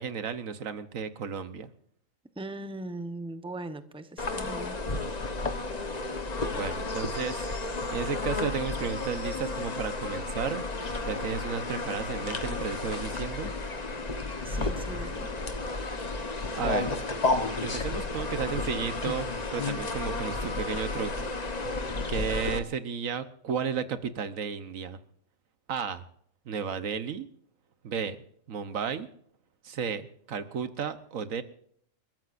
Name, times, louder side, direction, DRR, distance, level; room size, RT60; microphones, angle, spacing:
voice 1, 0.0-1.7 6.5-7.4 7.9-10.6 11.0-13.5 16.6-16.9 17.6-21.3 22.1-25.0 25.7-26.0 26.5-27.2 27.8-28.2 28.5-29.1 29.6-31.4, right 6 dB, 90° right, 11 dB, 1.4 m, -33 dB
voice 2, 2.4-4.8 14.4-15.3, right 2 dB, 5° right, 9 dB, 0.9 m, -39 dB
sound 1, 4.2-22.6, left 3 dB, 35° left, 1.2 m, -32 dB
30.0 x 13.5 x 2.6 m, 0.63 s
omnidirectional pair, 1.4 m